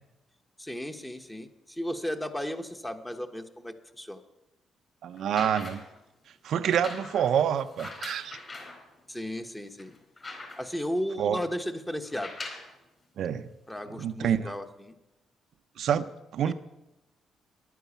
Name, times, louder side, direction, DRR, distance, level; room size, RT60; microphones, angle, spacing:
voice 1, 0.6-4.2 9.1-10.0 10.6-12.3 13.7-14.9 16.4-16.5, equal, 10° left, 7 dB, 1.0 m, -35 dB
voice 2, 5.0-5.8 6.4-8.4 11.2-11.4 13.2-13.5 14.0-14.5 15.8-16.5, right 9 dB, 70° right, 10 dB, 0.5 m, -27 dB
sound 1, 5.2-6.0 6.7-8.8 9.4-9.5 9.8-10.9 12.0-12.7 13.7-13.8, left 2 dB, 30° left, 4.2 m, -42 dB
11.0 x 9.3 x 7.1 m, 0.96 s
cardioid pair, 90°, 0 cm